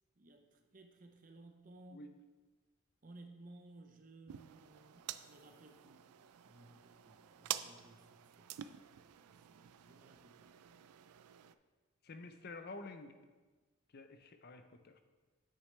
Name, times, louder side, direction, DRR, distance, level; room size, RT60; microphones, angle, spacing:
voice 1, 0.2-2.1 3.0-6.1 6.4-8.5 9.1-10.6, right 2 dB, 35° right, 5 dB, 0.5 m, -59 dB
sound 1, 4.3-11.5, right 12 dB, 90° right, 0.3 m, -49 dB
voice 2, 12.0-13.1 13.9-15.0, left 3 dB, 45° left, 8 dB, 0.5 m, -50 dB
8.0 x 6.5 x 3.2 m, 1.3 s
head